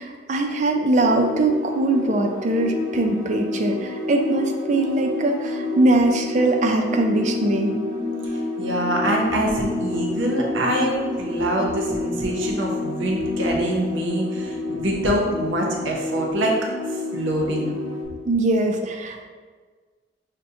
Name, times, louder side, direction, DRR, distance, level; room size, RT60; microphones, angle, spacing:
voice 1, 0.0-7.8 18.2-19.2, right 2 dB, 40° right, 4 dB, 0.3 m, -21 dB
sound 1, 1.0-18.0, left 2 dB, 15° right, 0.7 m, -29 dB
voice 2, 8.6-16.6 16.9-17.8, right 1 dB, 80° right, -1 dB, 0.7 m, -25 dB
5.4 x 2.1 x 2.7 m, 1.5 s
head